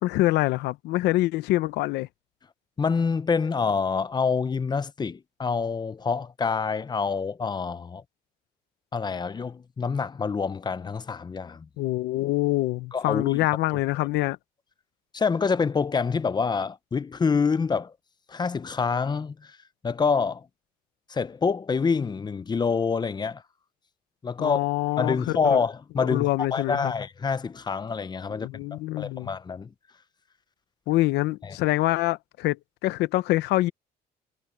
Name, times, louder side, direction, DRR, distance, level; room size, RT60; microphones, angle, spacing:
voice 1, 0.0-2.1 11.8-14.4 24.4-25.6 26.0-26.9 28.3-29.3 30.9-32.6 32.8-33.7, left 18 dB, 85° left, 0.9 m, -25 dB
voice 2, 2.8-8.0 8.9-11.7 12.9-13.4 15.1-17.9 18.3-19.6 19.8-20.5 21.1-23.4 24.2-24.6 25.0-29.7 31.4-31.6, left 5 dB, 25° left, 0.8 m, -27 dB
cardioid pair, 110°, 17 cm